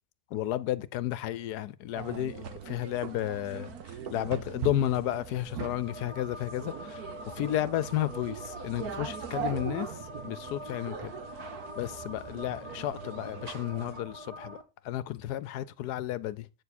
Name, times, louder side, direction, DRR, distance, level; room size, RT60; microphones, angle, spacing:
voice 1, 0.3-3.7 4.1-7.0 7.4-9.9 10.2-11.1 11.8-14.6 14.8-16.5, left 13 dB, 75° left, 1.2 m, -32 dB
sound 1, 1.9-14.0, right 8 dB, 65° right, 1.4 m, -41 dB
sound 2, 5.7-14.6, equal, 20° right, 1.2 m, -45 dB
8.7 x 6.9 x 4.2 m
omnidirectional pair, 1.8 m